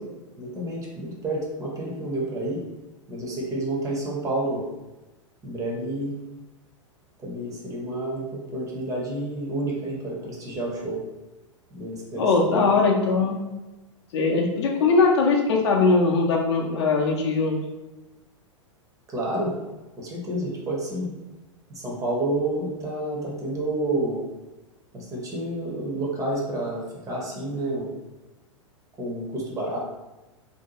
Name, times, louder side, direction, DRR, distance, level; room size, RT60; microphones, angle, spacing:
voice 1, 0.4-2.6 3.1-4.6 5.4-6.1 7.2-11.0 11.7-12.2 12.5-12.8 19.1-19.5 20.0-21.1 21.8-24.2 24.9-27.9 29.0-29.8, right 1 dB, 20° right, -2 dB, 0.6 m, -29 dB
voice 2, 12.2-13.4 14.1-17.6, left 4 dB, 55° left, 0 dB, 0.5 m, -20 dB
2.6 x 2.2 x 2.9 m, 1.1 s
figure-of-eight pair, 95°, 17 cm